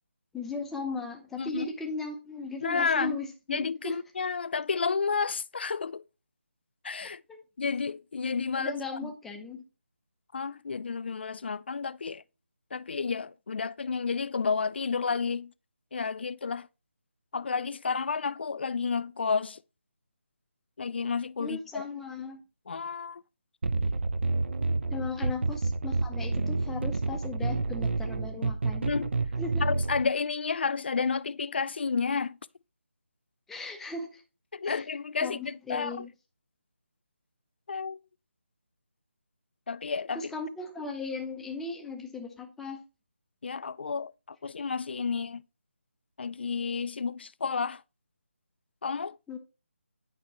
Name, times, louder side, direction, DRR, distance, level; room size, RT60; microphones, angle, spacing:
voice 1, 0.3-4.0 7.3-7.4 8.5-9.6 21.4-22.4 24.9-28.9 29.4-29.6 33.5-34.2 34.6-34.9 35.2-36.1 40.1-42.8 49.3-49.4, left 3 dB, 5° left, 0.6 m, -37 dB
voice 2, 1.4-1.7 2.6-3.2 3.5-6.0 6.8-7.2 7.6-8.7 9.0-9.1 10.3-12.2 12.7-15.5 15.9-16.7 17.3-19.6 20.8-21.8 22.7-23.2 28.8-29.1 29.6-32.4 34.5-36.0 37.7-38.0 39.7-40.2 43.4-45.4 46.2-47.8 48.8-49.2, left 5 dB, 50° left, 0.3 m, -31 dB
sound 1, 23.6-30.0, right 3 dB, 55° right, 0.7 m, -29 dB
9.4 x 5.6 x 2.9 m
figure-of-eight pair, 160°, 7 cm